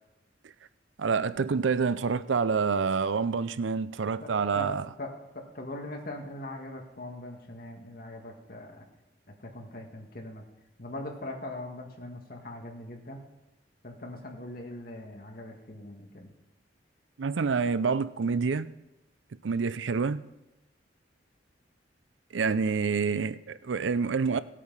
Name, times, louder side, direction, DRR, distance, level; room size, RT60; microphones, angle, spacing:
voice 1, 1.0-4.9 17.2-18.7 19.4-20.2 22.3-24.4, right 5 dB, 90° right, 0.5 m, -27 dB
voice 2, 4.2-8.8 9.4-10.4 10.8-13.2 13.8-16.3 22.4-22.6, left 1 dB, 50° left, 1.9 m, -41 dB
16.5 x 8.4 x 5.6 m
head